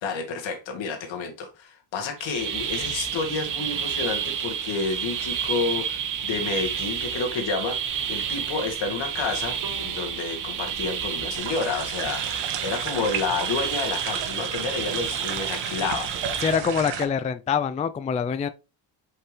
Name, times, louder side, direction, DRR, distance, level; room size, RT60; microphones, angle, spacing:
voice 1, 0.0-7.8 8.1-16.1, left 4 dB, 80° left, 2.1 m, -30 dB
sound 1, 2.2-16.5, right 8 dB, 45° right, 1.0 m, -30 dB
Bowed string instrument, 9.6-12.7, right 2 dB, 60° right, 1.5 m, -48 dB
sound 2, 11.3-17.1, right 8 dB, 80° right, 1.4 m, -33 dB
voice 2, 16.4-18.5, left 6 dB, 20° left, 0.3 m, -25 dB
5.5 x 5.5 x 3.4 m
cardioid pair, 140°, 45 cm